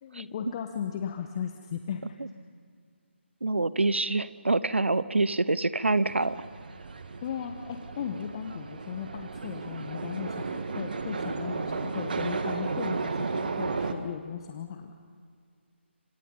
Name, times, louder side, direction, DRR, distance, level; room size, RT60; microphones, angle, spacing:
voice 1, 0.0-2.0 7.2-14.9, left 8 dB, 25° left, 6 dB, 1.1 m, -36 dB
voice 2, 3.4-6.4, right 2 dB, 70° right, 16 dB, 1.0 m, -26 dB
sound 1, 6.0-13.9, right 4 dB, 50° right, 1.8 m, -34 dB
27.0 x 26.5 x 5.6 m, 2.1 s
figure-of-eight pair, 150°, 7 cm